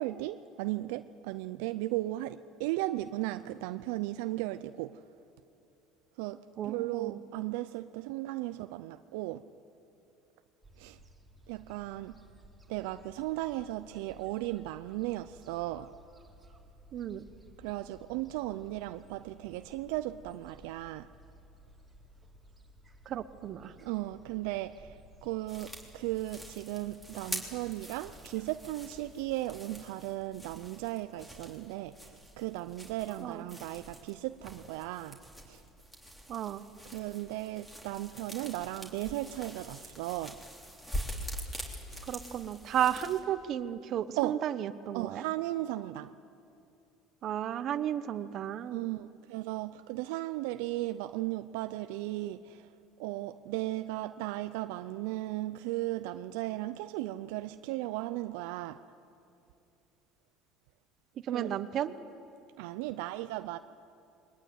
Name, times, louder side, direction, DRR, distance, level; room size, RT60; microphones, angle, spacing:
voice 1, 0.0-5.0 6.2-9.4 10.8-11.0 11.5-12.1 12.7-15.9 17.6-21.1 23.8-35.2 35.5-35.6 36.9-40.4 44.2-44.4 44.9-46.1 48.7-52.6 53.0-58.8 61.3-61.5 62.6-63.6, right 16 dB, 85° right, 0.5 m, -36 dB
voice 2, 6.6-7.2 16.9-17.2 23.1-23.7 33.2-33.4 36.3-36.7 42.1-45.3 47.2-48.8 61.2-61.9, right 10 dB, 50° right, 1.1 m, -33 dB
Gull seagull, 10.6-29.6, equal, 10° right, 3.0 m, -57 dB
sound 1, 25.5-43.2, equal, 5° left, 3.6 m, -45 dB
22.0 x 19.5 x 9.5 m
supercardioid pair, 115°, 0 cm